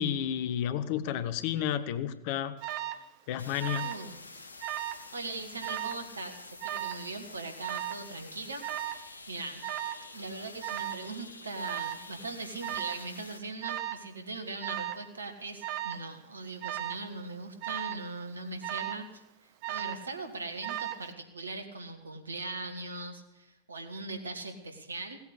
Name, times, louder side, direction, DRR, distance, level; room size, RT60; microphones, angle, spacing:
voice 1, 0.0-2.5 3.3-3.9, left 10 dB, 45° left, 13 dB, 0.9 m, -31 dB
Alarm, 2.6-3.0 3.6-4.1 4.4-5.0 5.6-6.0 6.6-7.1 7.6-8.1 8.6-9.1 9.6-10.0 10.6-11.0 11.6-12.0 12.6-13.1 13.6-14.1 14.6-15.0 15.6-16.0 16.6-17.1 17.6-18.0 18.6-19.1 19.6-20.1 20.6-21.1, right 12 dB, 45° right, 0.8 m, -36 dB
sound 1, 3.4-13.4, left 3 dB, 75° left, 1.0 m, -48 dB
voice 2, 3.8-4.2 5.1-9.0 9.3-9.6 10.1-25.2, right 3 dB, 75° right, 6 dB, 1.7 m, -40 dB
17.0 x 8.4 x 8.2 m, 0.94 s
figure-of-eight pair, 90°, 0 cm